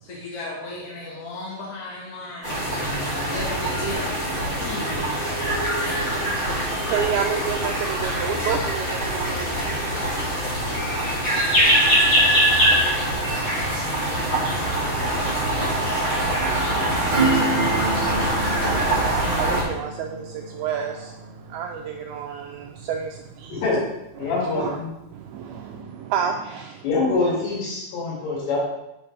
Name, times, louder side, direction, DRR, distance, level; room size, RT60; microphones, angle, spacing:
voice 1, 0.0-2.7 3.2-6.1, left 1 dB, 65° left, -4 dB, 1.4 m, -37 dB
sound 1, 2.4-19.6, right 1 dB, 25° left, 1.6 m, -23 dB
voice 2, 6.7-9.6 16.1-16.2 18.7-21.2 21.5-23.6 24.2-24.8 25.1-26.9, right 8 dB, 85° right, 3 dB, 2.2 m, -30 dB
Acoustic guitar / Strum, 17.1-23.3 23.7-23.8, right 3 dB, 55° right, 2.7 m, -29 dB
voice 3, 24.2-24.9 26.8-28.6, left 3 dB, 85° left, -6 dB, 4.4 m, -24 dB
9.3 x 6.1 x 3.3 m, 0.88 s
omnidirectional pair, 4.8 m